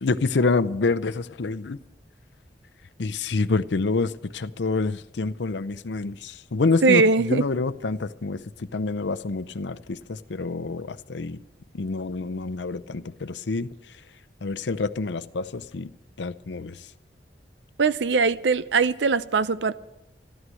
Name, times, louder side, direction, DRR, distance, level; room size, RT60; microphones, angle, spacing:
voice 1, 0.0-1.8 3.0-11.4 11.7-13.7 14.4-15.9 16.2-16.8, left 3 dB, 90° left, 0.6 m, -27 dB
voice 2, 6.8-7.5 17.8-19.7, right 4 dB, 85° right, 0.6 m, -21 dB
13.0 x 12.5 x 7.6 m
head